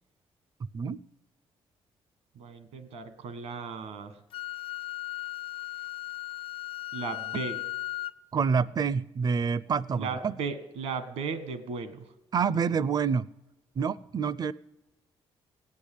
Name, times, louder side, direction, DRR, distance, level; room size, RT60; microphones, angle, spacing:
voice 1, 2.3-4.2 6.9-7.6 9.9-12.0, right 5 dB, 85° right, 11 dB, 1.5 m, -36 dB
Wind instrument woodwind instrument, 4.3-8.2, left 18 dB, 55° left, 0.4 m, -36 dB
voice 2, 8.3-10.3 12.3-13.3 13.8-14.5, right 6 dB, 40° right, 21 dB, 0.5 m, -27 dB
17.5 x 8.4 x 8.4 m, 1.0 s
cardioid pair, 80°, 11 cm